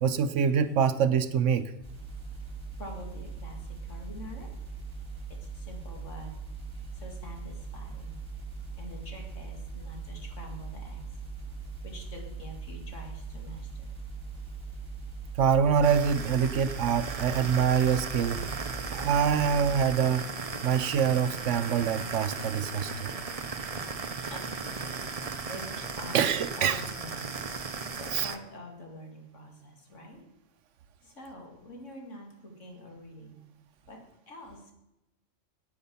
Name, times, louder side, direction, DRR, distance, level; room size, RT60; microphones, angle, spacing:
voice 1, 0.0-1.7 15.4-18.4 18.9-20.3 20.6-23.1 26.1-26.8 28.1-28.3, right 7 dB, 70° right, 12 dB, 0.9 m, -25 dB
sound 1, 1.8-19.8, right 4 dB, 15° right, 3.1 m, -40 dB
voice 2, 2.8-4.5 5.3-6.4 6.9-8.2 8.7-11.1 11.8-14.0 24.1-24.5 25.5-27.4 27.9-30.2 31.0-33.4 33.9-34.7, left 1 dB, 65° left, 1 dB, 2.6 m, -46 dB
sound 2, 15.8-28.4, right 4 dB, 35° right, 0.7 m, -36 dB
9.8 x 8.6 x 6.9 m, 0.91 s
omnidirectional pair, 1.4 m